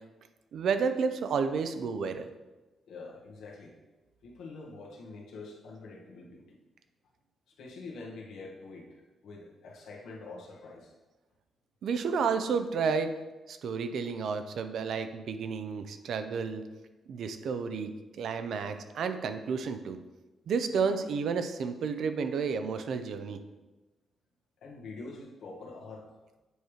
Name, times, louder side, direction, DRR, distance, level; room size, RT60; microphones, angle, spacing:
voice 1, 0.5-2.3 11.8-13.1 13.5-16.6 17.1-17.9 18.2-20.0 20.5-23.4, right 5 dB, 65° right, 9 dB, 0.5 m, -31 dB
voice 2, 2.9-3.7 4.2-6.6 7.6-10.9 24.6-26.1, left 3 dB, 80° left, -2 dB, 1.3 m, -45 dB
8.0 x 3.1 x 4.9 m, 1.1 s
cardioid pair, 140°, 0 cm